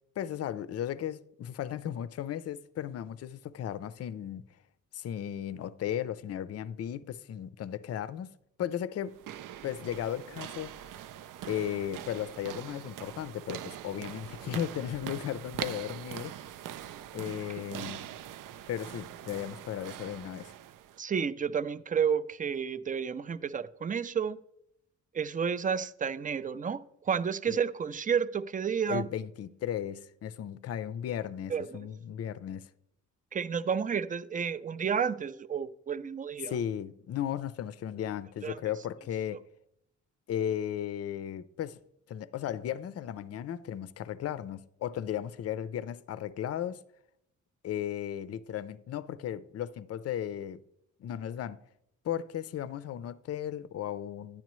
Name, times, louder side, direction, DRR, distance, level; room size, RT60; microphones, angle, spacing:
voice 1, 0.2-4.6 4.9-9.2 9.6-10.8 11.5-16.4 17.1-18.1 18.7-20.5 27.5-27.6 28.9-32.7 36.4-39.4 40.3-41.8 42.1-46.8 47.6-50.6 51.0-51.6 52.0-54.4, left 10 dB, 50° left, 0.5 m, -35 dB
sound 1, 9.1-21.0, right 11 dB, 80° right, 0.6 m, -43 dB
voice 2, 21.0-24.4 25.1-29.1 31.5-31.8 33.3-36.5 38.4-38.5, right 7 dB, 25° right, 0.4 m, -31 dB
10.5 x 10.0 x 3.1 m
cardioid pair, 120°, 32 cm